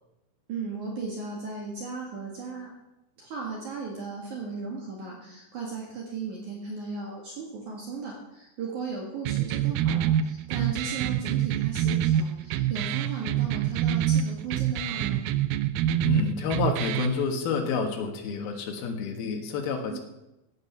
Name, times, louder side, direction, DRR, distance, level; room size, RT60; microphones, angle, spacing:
voice 1, 0.5-2.7 3.2-15.2 19.9-20.0, right 4 dB, 55° right, -2 dB, 2.9 m, -36 dB
sound 1, 9.2-17.2, right 10 dB, 80° right, 2.2 m, -26 dB
voice 2, 16.0-20.0, left 5 dB, 70° left, 3 dB, 3.3 m, -29 dB
15.0 x 9.2 x 5.8 m, 0.93 s
omnidirectional pair, 4.8 m